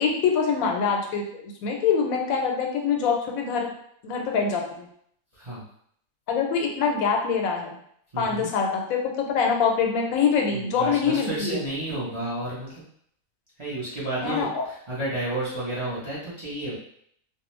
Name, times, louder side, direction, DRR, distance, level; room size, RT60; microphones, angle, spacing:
voice 1, 0.0-3.7 4.0-4.9 6.3-7.7 8.2-11.6 14.2-14.6, left 6 dB, 85° left, 1 dB, 1.0 m, -24 dB
voice 2, 8.1-8.5 10.5-12.8 13.6-16.7, right 1 dB, 30° right, -8 dB, 0.6 m, -31 dB
2.5 x 2.1 x 3.0 m, 0.67 s
omnidirectional pair, 1.4 m